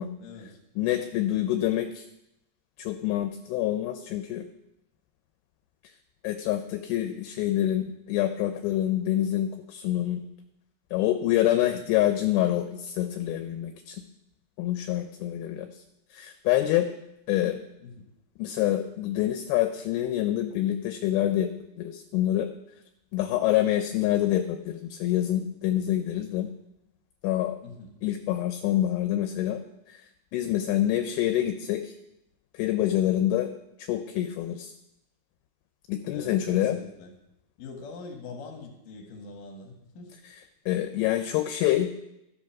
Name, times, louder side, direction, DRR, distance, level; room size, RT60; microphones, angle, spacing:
voice 1, 0.2-0.6 11.5-11.9 17.8-18.1 27.6-28.0 32.7-32.8 36.1-37.1 37.6-40.1, left 3 dB, 55° left, 2 dB, 2.8 m, -43 dB
voice 2, 0.8-2.0 2.8-4.4 6.2-10.2 10.9-14.0 14.6-15.8 16.1-16.9 17.3-17.6 18.4-21.5 21.8-22.5 23.1-26.5 27.2-27.6 28.0-29.6 29.9-30.0 30.3-31.9 32.5-33.5 33.8-34.7 35.9-36.8 40.7-41.9, left 13 dB, 80° left, 7 dB, 2.9 m, -26 dB
13.5 x 8.2 x 5.9 m, 0.87 s
omnidirectional pair, 5.9 m